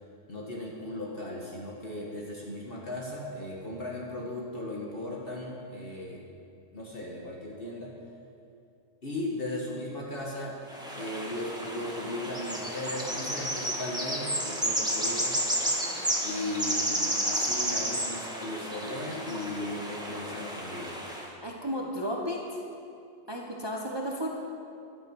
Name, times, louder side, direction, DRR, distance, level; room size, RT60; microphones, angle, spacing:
voice 1, 0.3-6.2 6.7-7.9 9.0-10.6 10.9-15.4 16.2-21.0, left 1 dB, 50° left, -3 dB, 1.8 m, -37 dB
sound 1, 10.7-21.3, right 1 dB, 5° right, 1.9 m, -32 dB
voice 2, 21.4-22.6 23.3-24.3, equal, 20° right, 0 dB, 1.2 m, -33 dB
14.5 x 12.0 x 6.3 m, 2.6 s
omnidirectional pair, 1.3 m